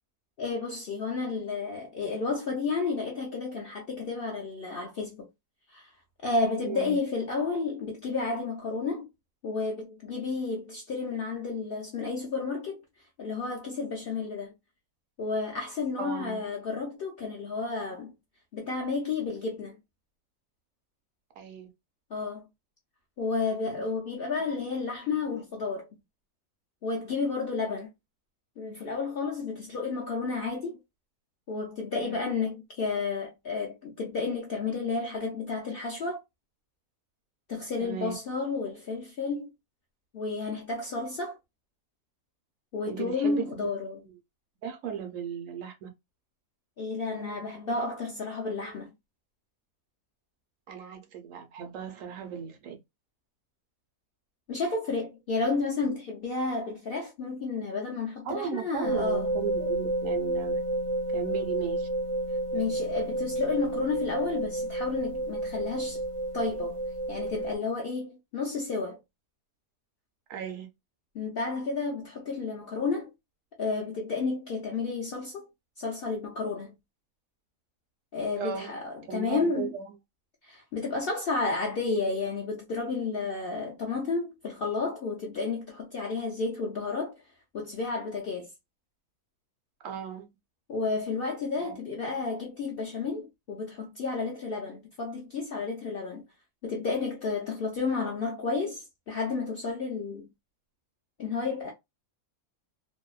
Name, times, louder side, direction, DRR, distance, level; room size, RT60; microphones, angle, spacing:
voice 1, 0.4-5.3 5.7-5.9 6.2-9.1 9.4-12.8 13.2-14.5 15.2-18.1 18.5-19.8 22.1-22.4 23.2-25.9 26.8-27.9 28.6-30.8 31.5-36.2 37.5-39.5 40.1-41.4 42.7-44.0 46.8-48.9 54.5-59.3 62.5-66.0 66.3-66.8 67.1-69.0 71.1-73.1 73.6-75.5 75.8-76.7 78.1-79.7 80.4-87.1 87.5-88.5 90.7-96.2 96.6-100.3 101.2-101.7, left 4 dB, 65° left, 0.6 m, -31 dB
voice 2, 6.6-7.0 16.0-16.4 21.4-21.7 32.0-32.2 37.8-38.1 42.9-43.6 44.0-44.2 44.6-45.9 50.7-52.8 58.2-60.6 61.1-61.9 70.3-70.7 78.4-78.8 79.1-79.9 89.8-90.3 91.6-91.8, right 8 dB, 70° right, 0.9 m, -36 dB
sound 1, 58.8-67.5, right 1 dB, 40° right, 0.5 m, -31 dB
2.6 x 2.0 x 2.3 m
omnidirectional pair, 1.5 m